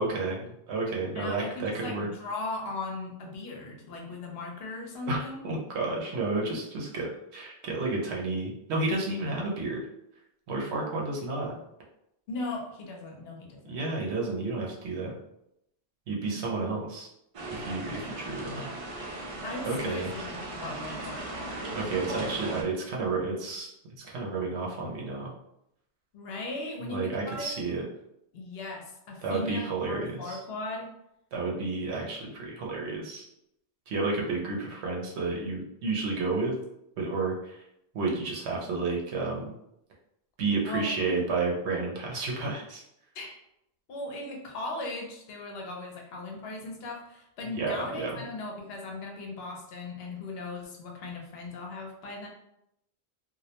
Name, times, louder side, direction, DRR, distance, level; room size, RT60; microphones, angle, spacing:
voice 1, 0.0-2.1 5.1-5.2 5.4-9.8 10.5-11.6 13.7-15.1 16.1-17.1 17.5-18.7 19.7-20.1 21.7-23.7 24.0-25.3 26.8-27.8 29.2-30.4 31.3-33.3 33.9-36.6 37.0-37.6 37.9-39.5 40.4-42.8 47.5-48.1, right 3 dB, 90° right, -2 dB, 0.9 m, -31 dB
voice 2, 1.2-5.4 12.3-13.8 16.3-16.4 19.4-21.5 26.1-27.5 28.3-30.9 40.6-41.3 43.1-43.4 43.9-52.3, left 2 dB, 70° left, 1 dB, 0.8 m, -38 dB
sound 1, 17.3-22.6, right 1 dB, 60° right, 0.3 m, -37 dB
2.2 x 2.0 x 2.7 m, 0.80 s
omnidirectional pair, 1.1 m